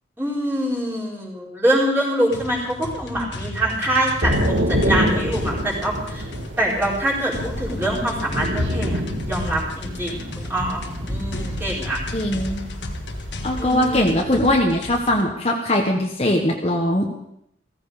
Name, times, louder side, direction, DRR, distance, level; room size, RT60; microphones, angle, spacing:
voice 1, 0.2-6.2 6.6-9.0 9.3-12.0 13.6-14.2, right 1 dB, 10° right, -4 dB, 4.4 m, -24 dB
sound 1, 2.3-15.2, left 1 dB, 70° left, 1.6 m, -34 dB
Thunder / Rain, 4.2-14.2, equal, 85° right, 2.2 m, -27 dB
voice 2, 12.1-12.6 13.4-17.1, left 1 dB, 35° left, 1 dB, 1.4 m, -20 dB
16.0 x 15.0 x 5.0 m, 0.74 s
head